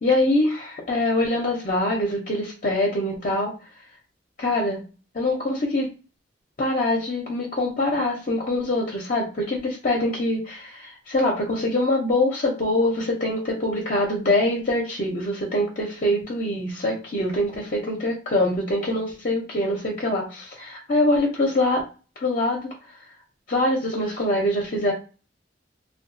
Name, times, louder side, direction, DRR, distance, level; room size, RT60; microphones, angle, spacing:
voice 1, 0.0-3.5 4.4-4.8 5.1-5.9 6.6-21.8 22.2-22.7 23.5-24.9, left 1 dB, 45° left, -1 dB, 0.6 m, -24 dB
2.7 x 2.2 x 2.6 m, 0.34 s
head